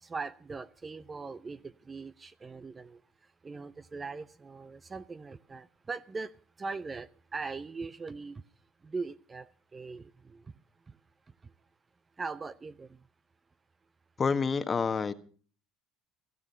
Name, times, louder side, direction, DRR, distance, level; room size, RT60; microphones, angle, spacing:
voice 1, 0.0-3.0 3.4-6.3 6.6-8.4 8.8-10.4 12.2-12.9, right 4 dB, 25° right, 13 dB, 0.7 m, -40 dB
voice 2, 14.2-15.1, left 5 dB, 30° left, 11 dB, 1.4 m, -28 dB
16.0 x 15.5 x 5.5 m, 0.43 s
hypercardioid pair, 65°, 0 cm